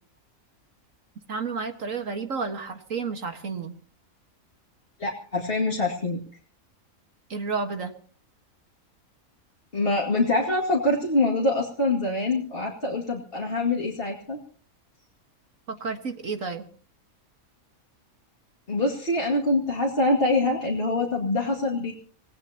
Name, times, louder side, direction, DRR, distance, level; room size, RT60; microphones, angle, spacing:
voice 1, 1.3-3.7 7.3-7.9 15.7-16.6, right 4 dB, 65° right, 6 dB, 2.0 m, -31 dB
voice 2, 5.0-6.2 9.7-14.4 18.7-21.9, left 2 dB, 40° left, -3 dB, 2.6 m, -25 dB
27.0 x 18.5 x 2.9 m, 0.43 s
omnidirectional pair, 1.5 m